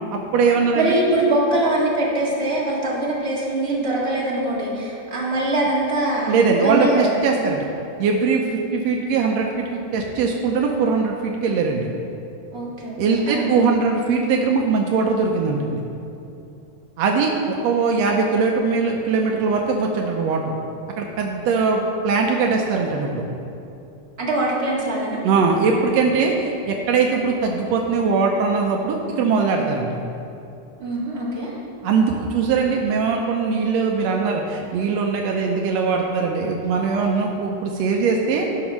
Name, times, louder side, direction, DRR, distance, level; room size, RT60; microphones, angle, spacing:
voice 1, 0.1-0.9 6.3-7.7 8.0-11.9 13.0-15.8 17.0-20.5 21.0-23.2 25.2-30.0 31.8-38.5, right 4 dB, 85° right, 1 dB, 1.5 m, -21 dB
voice 2, 0.7-7.2 12.5-13.6 24.2-25.2 30.8-31.6, right 2 dB, 25° right, -6 dB, 1.4 m, -23 dB
12.0 x 6.3 x 5.9 m, 2.7 s
omnidirectional pair, 4.0 m